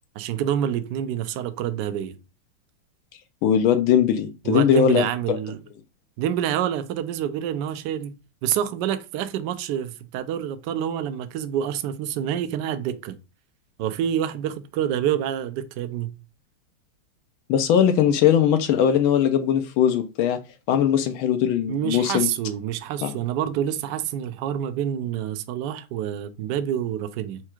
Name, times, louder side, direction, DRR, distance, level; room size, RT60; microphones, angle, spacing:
voice 1, 0.1-2.2 4.4-5.6 6.2-8.2 8.4-13.2 13.8-16.1 20.7-20.8 21.7-27.4, right 10 dB, 75° right, 1.0 m, -27 dB
voice 2, 3.4-5.4 17.5-20.4 20.7-22.3 23.0-23.1, left 9 dB, 80° left, 1.4 m, -20 dB
4.6 x 2.3 x 4.4 m
omnidirectional pair, 2.3 m